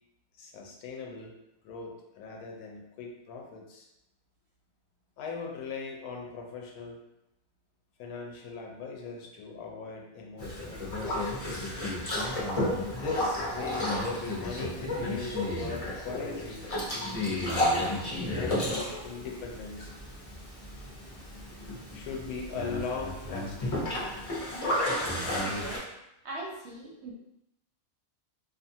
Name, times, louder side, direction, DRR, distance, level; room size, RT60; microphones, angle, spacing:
voice 1, 0.4-1.3 1.6-3.9 5.2-7.0 8.0-11.7 12.9-19.9 21.9-24.1, left 4 dB, 85° left, 0 dB, 1.1 m, -40 dB
Boat Water vehicle, 10.4-25.8, left 1 dB, 35° left, 0.6 m, -32 dB
voice 2, 25.4-25.8 26.2-27.1, right 2 dB, 65° right, -2 dB, 0.7 m, -40 dB
2.6 x 2.5 x 2.7 m, 0.87 s
omnidirectional pair, 1.5 m